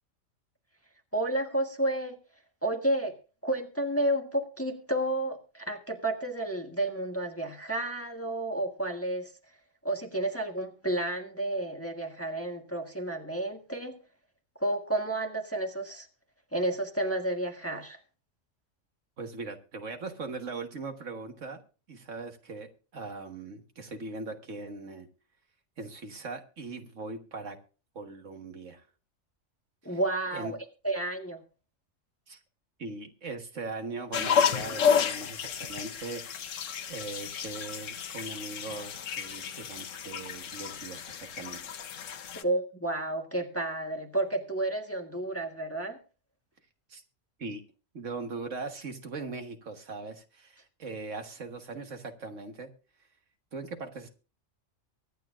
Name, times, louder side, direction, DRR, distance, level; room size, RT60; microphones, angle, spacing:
voice 1, 1.1-2.2 2.6-3.1 3.4-9.3 9.8-14.0 14.6-16.1 16.5-18.0 29.8-30.6 30.8-31.4 42.4-46.0, right 1 dB, 10° left, 3 dB, 1.3 m, -31 dB
voice 2, 19.2-21.6 21.9-25.1 25.8-27.6 28.0-28.9 29.9-30.0 30.3-30.5 32.3-32.4 32.8-36.5 36.9-41.7 46.9-47.0 47.4-47.6 47.9-52.7 53.5-54.1, right 3 dB, 70° right, 6 dB, 1.7 m, -40 dB
sound 1, 34.1-42.4, left 7 dB, 75° left, 1.2 m, -31 dB
23.5 x 9.2 x 2.5 m, 0.35 s
omnidirectional pair, 1.3 m